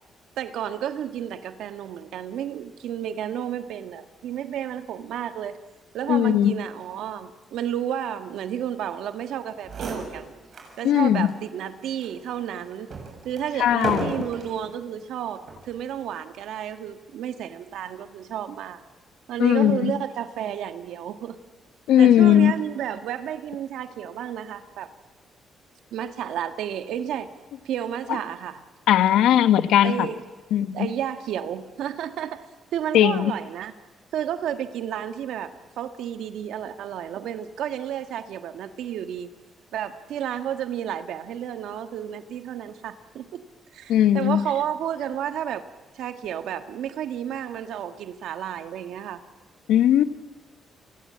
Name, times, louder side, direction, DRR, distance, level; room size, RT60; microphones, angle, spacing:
voice 1, 0.4-5.6 5.9-10.3 10.8-12.9 13.2-18.8 19.3-21.4 22.0-24.9 25.9-27.3 27.6-28.6 29.8-30.2 30.7-32.4 32.7-33.7 34.1-35.5 35.8-39.3 39.7-43.4 43.7-45.7 45.9-49.2, right 10 dB, 80° right, 9 dB, 1.5 m, -31 dB
voice 2, 6.1-6.5 10.8-11.3 13.6-14.3 19.4-19.9 21.9-22.5 28.9-30.1 30.5-30.9 32.9-33.3 43.9-44.4 49.7-50.0, left 11 dB, 90° left, 12 dB, 1.1 m, -18 dB
sound 1, 9.3-9.4 9.6-10.8 11.2-11.3 12.0-14.6 15.4-15.7, right 3 dB, 50° right, 7.3 m, -34 dB
29.5 x 23.0 x 8.8 m, 1.2 s
cardioid pair, 100°, 0 cm